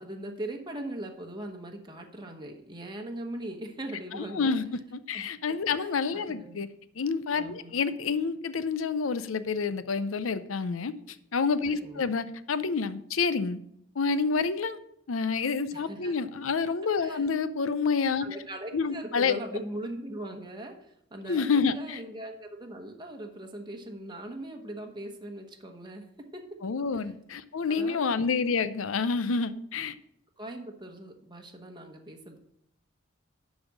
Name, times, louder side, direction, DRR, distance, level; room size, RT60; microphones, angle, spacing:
voice 1, 0.0-4.6 5.1-6.6 7.4-7.7 11.7-12.1 15.7-16.1 17.0-17.3 18.2-20.8 21.1-26.6 26.9-27.1 27.7-28.1 30.4-32.4, right 1 dB, 20° right, 1.0 m, -40 dB
voice 2, 4.1-6.7 7.0-10.9 11.3-13.6 14.0-14.8 15.1-18.3 18.7-19.4 21.3-22.0 26.6-29.9, left 5 dB, 85° left, 0.6 m, -28 dB
11.0 x 4.2 x 6.2 m
head